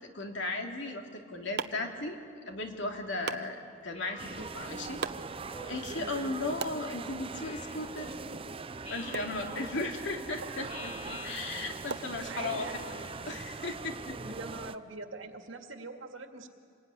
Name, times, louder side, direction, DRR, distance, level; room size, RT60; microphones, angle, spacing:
voice 1, 0.0-2.2 2.5-5.0 5.7-8.1 8.9-12.8 13.3-14.2, left 2 dB, 65° left, 3 dB, 2.7 m, -36 dB
sound 1, 0.9-12.8, right 5 dB, 60° right, 0.9 m, -45 dB
Speech synthesizer, 3.9-4.7 5.5-6.4 7.3-8.2 8.8-9.9 10.7-11.9 12.4-13.5, left 2 dB, 35° left, 3.0 m, -48 dB
sound 2, 4.2-14.8, right 4 dB, 30° right, 0.6 m, -41 dB
voice 2, 6.0-6.3 10.4-10.6 12.3-12.8 14.2-16.5, right 3 dB, 85° right, 5 dB, 2.2 m, -43 dB
27.0 x 21.0 x 9.8 m, 2.5 s
head